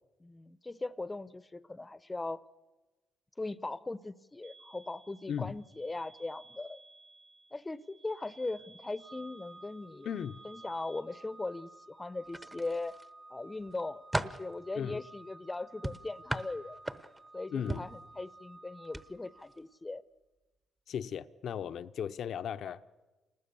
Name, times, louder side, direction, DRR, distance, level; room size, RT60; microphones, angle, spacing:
voice 1, 0.2-2.4 3.4-6.8 7.5-10.1 10.4-13.0 13.3-16.8 17.3-20.0, left 2 dB, 15° left, 0.8 m, -39 dB
sound 1, 4.4-11.0, right 3 dB, 75° right, 6.8 m, -58 dB
Organ, 9.0-19.8, right 2 dB, 40° right, 1.9 m, -54 dB
voice 2, 10.0-10.4 14.7-15.0 17.5-17.9 20.9-22.8, left 8 dB, 65° left, 0.7 m, -36 dB
sound 2, 12.3-13.1 13.6-14.5 15.8-17.3 17.7-18.0 18.8-19.0 19.4-19.6, right 1 dB, 15° right, 1.0 m, -37 dB
28.5 x 20.0 x 7.0 m
cardioid pair, 90°, 0 cm